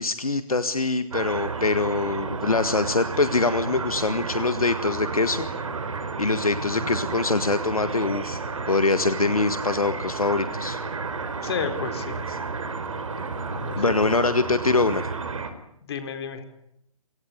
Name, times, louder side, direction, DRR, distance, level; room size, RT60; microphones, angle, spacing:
voice 1, 0.0-5.5 6.2-8.4 8.7-10.8 12.3-12.4 13.7-15.1, left 3 dB, 80° left, 11 dB, 1.7 m, -24 dB
sound 1, 1.1-15.5, right 4 dB, 65° right, 4.3 m, -32 dB
voice 2, 6.6-7.0 11.4-12.2 13.5-13.8 15.8-16.4, left 6 dB, 45° left, 8 dB, 4.1 m, -32 dB
27.5 x 18.0 x 9.8 m, 0.80 s
figure-of-eight pair, 130°, 18 cm